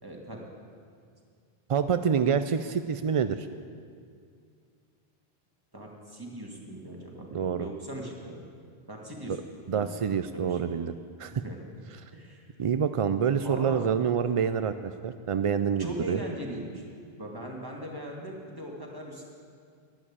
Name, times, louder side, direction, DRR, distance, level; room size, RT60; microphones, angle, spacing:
voice 1, 0.0-0.5 5.7-8.4 8.9-9.4 9.7-10.0 10.3-10.6 11.3-11.8 12.1-12.4 13.4-13.9 15.6-16.8 17.2-19.3, right 1 dB, 20° right, -2 dB, 2.3 m, -40 dB
voice 2, 1.7-3.5 7.3-7.7 9.3-9.4 9.7-10.9 11.2-11.3 12.6-16.2, right 7 dB, 55° right, 10 dB, 0.3 m, -27 dB
11.0 x 11.0 x 8.7 m, 2.2 s
omnidirectional pair, 1.1 m